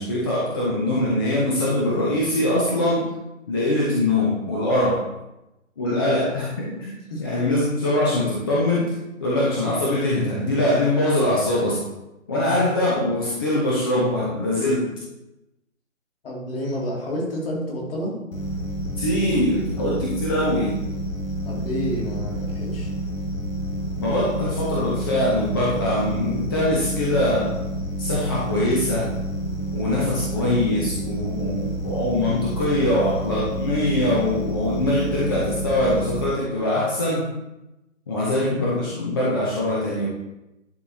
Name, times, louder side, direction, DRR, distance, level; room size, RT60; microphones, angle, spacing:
voice 1, 0.0-3.0 3.5-5.0 5.8-6.9 7.2-11.8 12.3-14.9 19.0-20.8 24.0-27.6 28.0-29.1 29.7-37.3 38.1-40.1, left 1 dB, 20° left, -5 dB, 0.7 m, -23 dB
voice 2, 16.2-18.1 21.5-22.9, equal, 45° left, -3 dB, 2.4 m, -29 dB
sound 1, 18.3-36.3, right 1 dB, 80° left, 1.9 m, -29 dB
10.5 x 4.6 x 2.7 m, 0.94 s
figure-of-eight pair, 145°, 40 cm